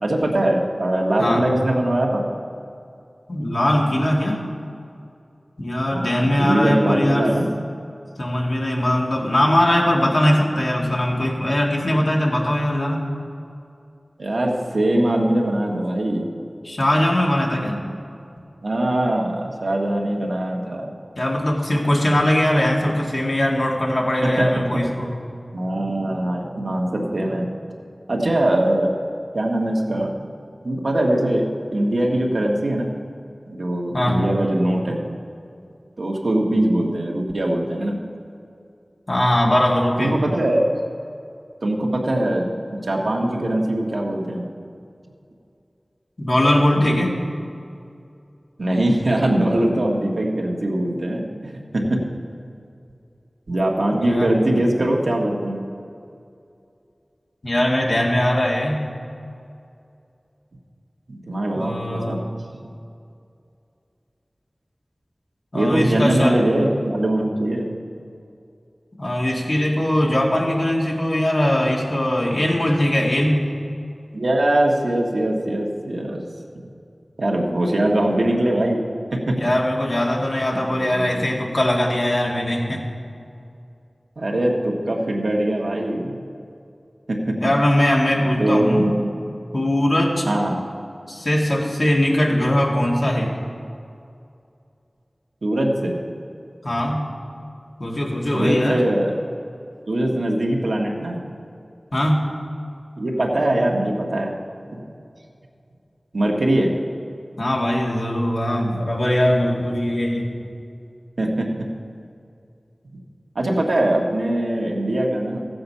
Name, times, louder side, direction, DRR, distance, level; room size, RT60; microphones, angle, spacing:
voice 1, 0.0-2.2 5.9-7.5 14.2-16.2 18.6-21.0 24.2-24.8 25.5-27.5 28.1-28.9 29.3-30.1 30.6-31.4 31.7-32.9 33.5-35.0 36.0-38.0 40.0-40.8 41.6-44.5 48.6-52.0 53.5-55.6 61.1-62.2 62.5-62.7 65.5-67.7 74.1-76.2 77.2-78.8 79.1-79.4 80.7-81.3 84.2-86.2 87.1-87.4 88.4-89.0 90.2-90.6 95.4-96.0 98.3-99.1 99.9-101.2 103.0-104.3 104.7-104.8 106.1-106.7 111.2-111.5 113.3-115.4, right 1 dB, 80° right, -1 dB, 1.5 m, -22 dB
voice 2, 1.2-1.5 3.3-4.4 5.6-7.3 8.2-13.1 16.6-17.8 21.2-25.2 33.9-34.2 39.1-40.2 46.2-47.2 53.9-54.3 57.4-58.9 61.5-62.2 65.5-66.4 69.0-73.5 79.3-82.9 87.4-88.9 89.5-90.3 91.1-93.3 96.6-97.0 97.8-98.8 101.9-102.3 107.4-110.4, left 1 dB, 60° left, -2 dB, 2.0 m, -20 dB
14.5 x 7.8 x 5.5 m, 2.5 s
wide cardioid pair, 55°, 0 cm